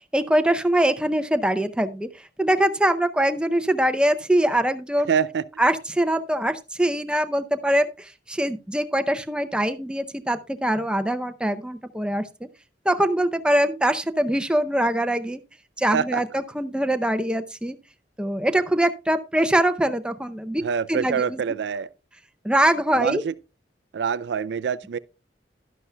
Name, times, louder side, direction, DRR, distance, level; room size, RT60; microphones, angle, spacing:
voice 1, 0.1-2.1 2.4-5.1 5.6-12.5 12.9-15.4 15.8-17.8 18.2-20.6 20.9-21.4 22.4-23.2, right 1 dB, 5° right, 0.6 m, -23 dB
voice 2, 5.1-5.5 15.9-16.2 20.6-21.9 22.9-23.3 23.9-25.0, right 6 dB, 80° right, 0.4 m, -25 dB
11.0 x 11.0 x 2.2 m
head